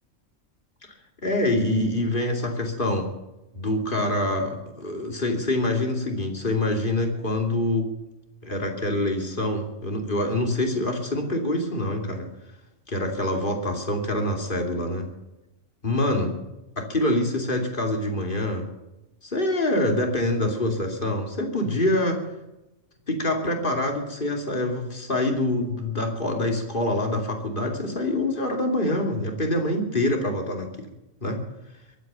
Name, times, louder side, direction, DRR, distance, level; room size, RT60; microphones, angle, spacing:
voice 1, 1.2-3.1 3.5-7.9 8.4-12.3 12.9-15.1 15.8-16.4 16.8-18.7 19.3-22.2 23.1-30.9 31.2-31.5, left 1 dB, 40° left, 3 dB, 2.9 m, -25 dB
22.5 x 9.2 x 6.9 m, 0.98 s
omnidirectional pair, 1.3 m